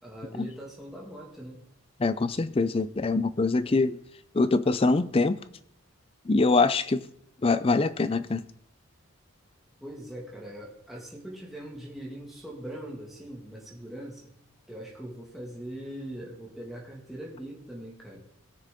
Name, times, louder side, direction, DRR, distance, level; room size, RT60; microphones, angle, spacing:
voice 1, 0.0-1.6 9.8-14.3 14.7-18.2, right 1 dB, ahead, 1.9 m, -41 dB
voice 2, 2.0-4.0 4.3-5.4 6.3-7.1 7.4-8.4, left 3 dB, 25° left, 0.4 m, -24 dB
18.0 x 6.5 x 3.7 m
head